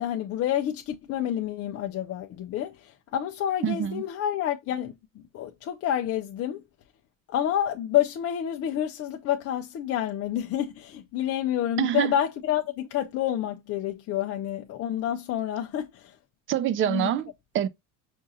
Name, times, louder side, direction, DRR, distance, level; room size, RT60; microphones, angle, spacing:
voice 1, 0.0-4.9 5.3-6.6 7.3-16.2 16.9-17.1, left 11 dB, 40° left, 0.5 m, -28 dB
voice 2, 3.6-4.0 11.8-12.1 16.5-17.7, right 10 dB, 35° right, 0.4 m, -26 dB
5.2 x 2.4 x 2.6 m
supercardioid pair, 120°, 37 cm